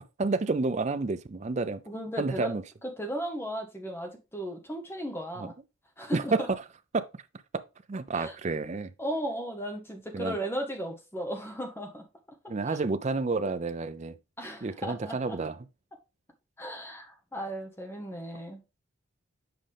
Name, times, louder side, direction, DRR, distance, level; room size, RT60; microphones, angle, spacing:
voice 1, 0.2-1.8 2.2-2.6 5.4-5.5 6.1-6.6 6.9-7.1 7.5-7.6 7.9-8.9 10.1-10.4 12.5-14.2 14.6-15.6, right 3 dB, 30° right, 0.4 m, -29 dB
voice 2, 1.9-2.5 2.8-5.5 6.0-6.3 8.1-8.3 9.0-12.1 12.7-12.8 14.4-15.4 16.6-18.6, equal, 10° left, 1.1 m, -36 dB
7.7 x 5.0 x 3.4 m
head